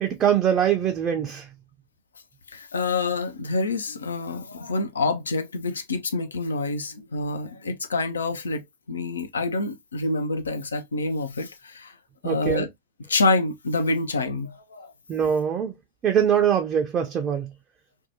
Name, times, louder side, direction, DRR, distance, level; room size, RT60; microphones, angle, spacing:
voice 1, 0.0-1.5 12.2-12.7 15.1-15.7 16.0-17.5, right 8 dB, 25° right, 0.4 m, -23 dB
voice 2, 2.5-8.6 8.9-11.9 12.2-12.7 13.1-14.9, left 3 dB, 70° left, 0.4 m, -27 dB
2.7 x 2.2 x 2.6 m
figure-of-eight pair, 90°, 0 cm